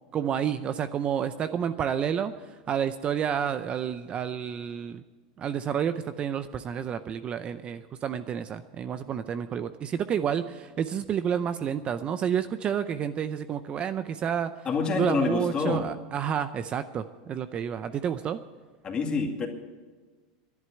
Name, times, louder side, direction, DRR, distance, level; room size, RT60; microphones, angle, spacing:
voice 1, 0.1-5.0 5.4-14.7 14.9-18.4, right 8 dB, 30° right, 11 dB, 0.5 m, -30 dB
voice 2, 14.6-15.9 18.8-19.5, left 4 dB, 25° left, 2 dB, 2.2 m, -27 dB
11.0 x 11.0 x 9.8 m, 1.4 s
supercardioid pair, 135°, 4 cm